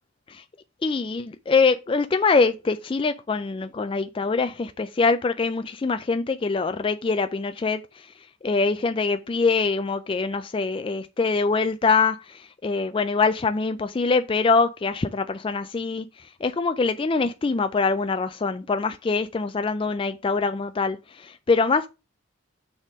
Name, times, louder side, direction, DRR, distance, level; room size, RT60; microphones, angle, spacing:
voice 1, 0.8-8.1 8.4-21.9, left 4 dB, 25° left, 0.3 m, -24 dB
6.5 x 3.6 x 6.1 m
head